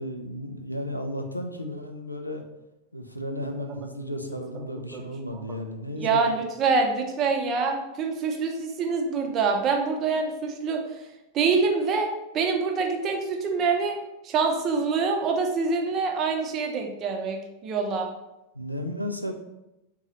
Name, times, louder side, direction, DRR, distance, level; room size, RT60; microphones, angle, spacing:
voice 1, 0.0-2.4 2.9-6.2 18.5-19.3, left 1 dB, 85° left, 5 dB, 0.3 m, -34 dB
voice 2, 6.0-10.8 11.3-12.1 12.3-14.0 14.2-18.1, right 4 dB, 30° right, 3 dB, 0.5 m, -25 dB
3.8 x 2.3 x 2.8 m, 0.92 s
figure-of-eight pair, 90°, 0 cm